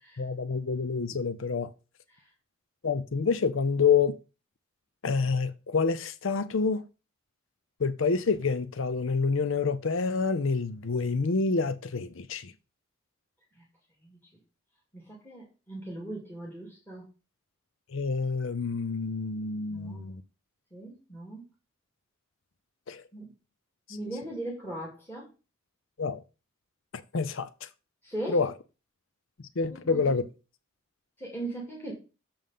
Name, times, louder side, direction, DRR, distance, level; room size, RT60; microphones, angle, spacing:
voice 1, 0.2-1.7 2.8-4.2 5.0-6.9 7.8-12.5 17.9-20.2 22.9-23.0 26.0-26.2 26.9-27.7 28.3-28.5 29.6-30.2, left 5 dB, 65° left, 0.6 m, -27 dB
voice 2, 14.9-17.1 19.7-20.1 20.7-21.4 23.1-23.3 23.9-25.3 28.0-28.4 29.7-30.0 31.2-31.9, right 1 dB, 10° left, 2.3 m, -39 dB
7.0 x 5.5 x 5.5 m
head